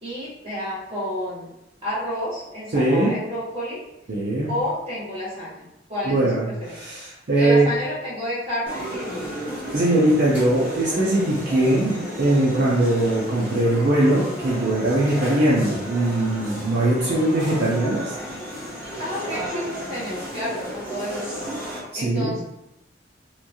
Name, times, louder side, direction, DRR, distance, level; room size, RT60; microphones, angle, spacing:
voice 1, 0.0-1.5 1.8-3.8 4.5-6.9 7.3-9.4 19.0-21.5 21.9-22.4, equal, 30° right, -10 dB, 1.4 m, -30 dB
voice 2, 2.7-3.1 4.1-4.5 6.1-6.5 6.7-7.7 9.7-18.1 21.9-22.3, right 1 dB, 60° right, -7 dB, 0.6 m, -21 dB
sound 1, 8.7-21.8, equal, 10° right, 1.3 m, -33 dB
2.9 x 2.3 x 2.6 m, 0.87 s
head